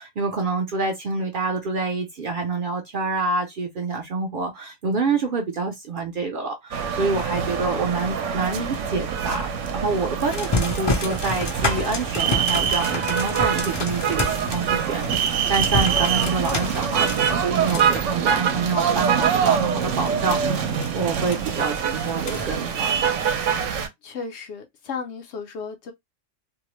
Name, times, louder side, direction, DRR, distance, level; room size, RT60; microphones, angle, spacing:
voice 1, 0.0-9.5 9.7-23.1, right 4 dB, 55° right, 0.6 m, -27 dB
sound 1, 6.7-23.9, right 7 dB, 80° right, 0.9 m, -24 dB
sound 2, 10.3-19.2 19.6-20.1 20.7-21.4 22.0-22.5, left 3 dB, 35° left, 0.4 m, -29 dB
voice 2, 19.7-20.1 23.6-25.9, left 5 dB, 70° left, 0.8 m, -36 dB
2.7 x 2.0 x 2.9 m
omnidirectional pair, 1.3 m